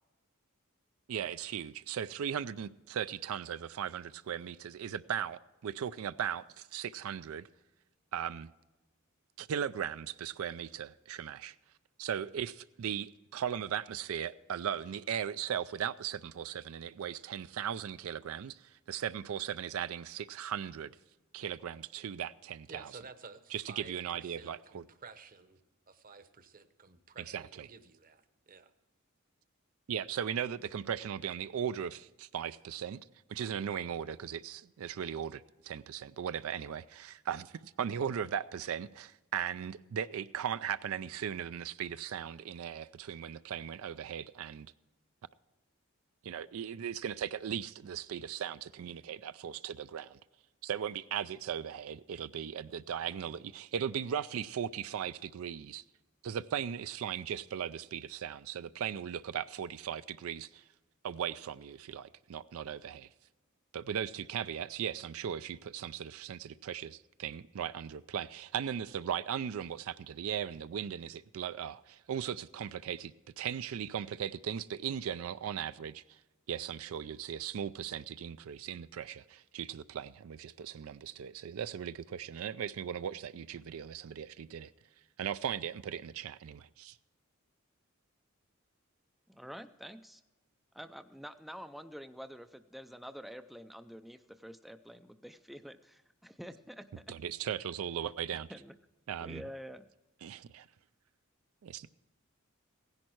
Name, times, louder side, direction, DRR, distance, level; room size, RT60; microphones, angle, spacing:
voice 1, 1.1-7.5 8.1-8.5 9.4-11.5 12.0-21.0 21.3-22.9 23.5-24.8 27.3-27.7 29.9-33.0 33.3-44.7 46.2-50.2 50.6-55.8 56.2-60.6 61.0-63.1 63.7-76.2 76.5-84.7 85.2-87.0 97.1-98.5 99.1-99.4 100.2-100.7 101.6-102.0, right 8 dB, 80° right, 0.4 m, -38 dB
voice 2, 22.7-25.6 25.9-28.7, right 4 dB, 40° right, 0.9 m, -52 dB
voice 3, 89.3-90.2 90.7-97.1 98.5-98.7 99.2-99.9, equal, ahead, 0.4 m, -48 dB
16.0 x 10.5 x 4.5 m
head